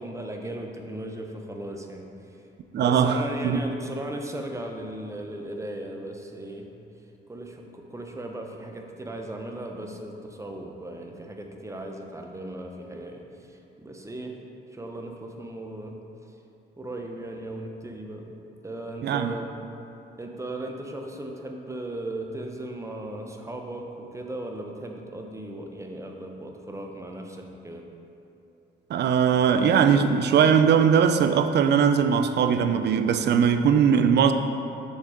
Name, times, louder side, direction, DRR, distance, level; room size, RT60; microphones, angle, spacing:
voice 1, 0.0-2.4 2.7-6.7 7.3-14.4 14.7-15.9 16.8-18.3 18.6-19.5 20.2-27.8, right 1 dB, 15° right, 0.8 m, -37 dB
voice 2, 2.7-3.6 19.0-19.3 28.9-34.3, right 7 dB, 60° right, 0.5 m, -20 dB
6.5 x 6.5 x 3.7 m
cardioid pair, 90°, 20 cm